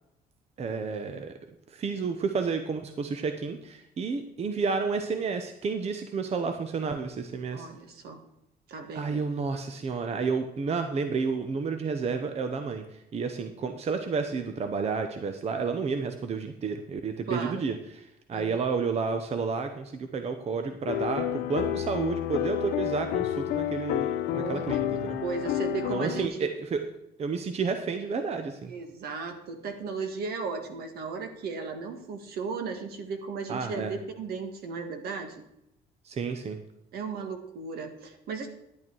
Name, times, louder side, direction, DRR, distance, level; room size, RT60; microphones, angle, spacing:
voice 1, 0.6-1.3 1.7-7.7 8.9-12.8 13.1-18.0 18.3-25.2 25.9-26.8 27.2-28.7 33.5-33.9 36.0-36.6, right 5 dB, 40° right, 7 dB, 0.9 m, -31 dB
voice 2, 7.5-8.2 8.7-9.2 17.3-17.6 18.3-18.5 24.3-24.8 25.2-26.4 28.7-35.4 36.9-38.5, right 4 dB, 65° right, 6 dB, 1.7 m, -35 dB
sound 1, 20.9-26.3, left 12 dB, 80° left, 0.7 m, -30 dB
10.5 x 8.6 x 4.6 m, 0.84 s
cardioid pair, 110°, 17 cm